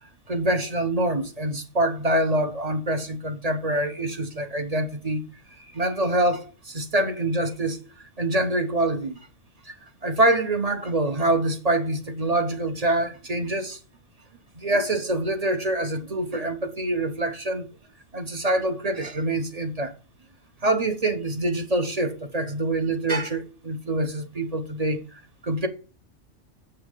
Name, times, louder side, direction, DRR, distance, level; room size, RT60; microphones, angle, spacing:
voice 1, 0.3-5.2 5.6-9.2 9.6-13.8 14.6-17.7 18.1-19.9 20.6-25.7, right 1 dB, 35° right, 1.0 m, -25 dB
7.3 x 5.6 x 5.5 m
omnidirectional pair, 1.2 m